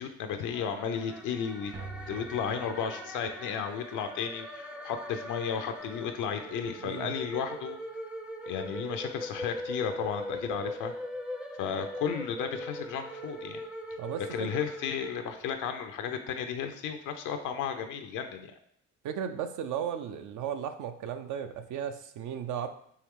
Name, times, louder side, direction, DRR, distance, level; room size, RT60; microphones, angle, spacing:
voice 1, 0.0-1.7 2.1-7.8 8.5-10.9 11.6-13.6 14.3-18.5, left 7 dB, 85° left, 6 dB, 0.5 m, -34 dB
sound 1, 0.5-15.8, left 1 dB, 5° right, 0.4 m, -41 dB
sound 2, 1.7-8.2 8.4-8.5 8.8-8.9, right 3 dB, 50° right, 1.2 m, -50 dB
voice 2, 6.8-7.2 14.0-14.5 19.0-22.7, right 8 dB, 80° right, 9 dB, 0.5 m, -35 dB
4.5 x 3.1 x 3.5 m, 0.69 s
cardioid pair, 90°, 30 cm